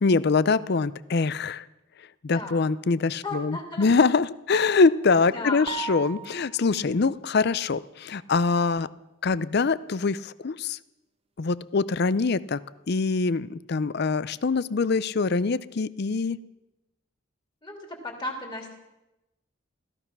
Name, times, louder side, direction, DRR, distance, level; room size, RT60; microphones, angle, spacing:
voice 1, 0.0-1.7 2.2-8.9 9.2-10.8 11.4-12.6 12.9-16.4, left 4 dB, 50° left, 18 dB, 0.5 m, -24 dB
voice 2, 2.3-2.7 3.2-3.9 5.3-5.7 17.6-18.7, left 2 dB, 20° left, 2 dB, 2.8 m, -35 dB
sound 1, 5.7-6.7, right 5 dB, 25° right, 1.0 m, -36 dB
16.5 x 14.5 x 6.0 m, 0.95 s
head